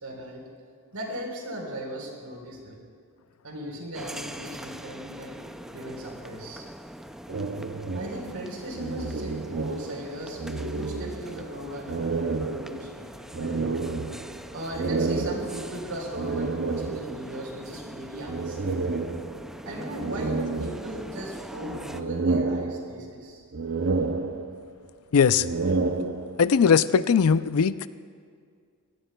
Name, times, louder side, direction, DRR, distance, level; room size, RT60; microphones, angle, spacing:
voice 1, 0.0-0.5 0.9-2.8 3.4-5.4 5.7-6.7 7.9-12.9 13.3-14.1 14.5-18.8 19.6-23.4, right 1 dB, 90° right, 0 dB, 3.9 m, -37 dB
sound 1, 3.9-22.0, equal, ahead, 0.3 m, -42 dB
sound 2, 7.3-10.1 10.4-11.5 11.9-17.3 18.3-19.6 20.0-21.3 21.7-23.2 23.5-24.8 25.3-26.6, right 3 dB, 60° right, 0.7 m, -30 dB
voice 2, 25.1-25.5 26.4-27.9, left 6 dB, 80° left, 14 dB, 0.5 m, -20 dB
24.5 x 17.5 x 2.3 m, 2.1 s
head